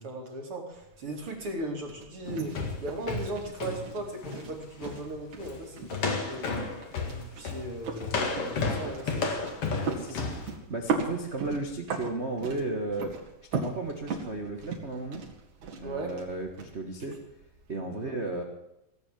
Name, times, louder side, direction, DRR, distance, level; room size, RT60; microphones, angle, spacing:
voice 1, 0.0-6.6 7.1-9.5 15.8-16.1 17.9-18.1, right 1 dB, 45° right, 2 dB, 3.2 m, -38 dB
sound 1, 0.7-17.7, right 4 dB, 60° right, 3.4 m, -39 dB
sound 2, 2.2-4.5 4.8-5.0 5.4-5.6 5.9-10.5, left 4 dB, 50° left, 2.6 m, -32 dB
voice 2, 9.8-10.4 10.7-13.1 13.5-15.2 15.8-17.2 17.7-18.4, right 2 dB, 85° right, 2 dB, 0.6 m, -34 dB
18.0 x 8.7 x 7.5 m, 0.88 s
omnidirectional pair, 3.9 m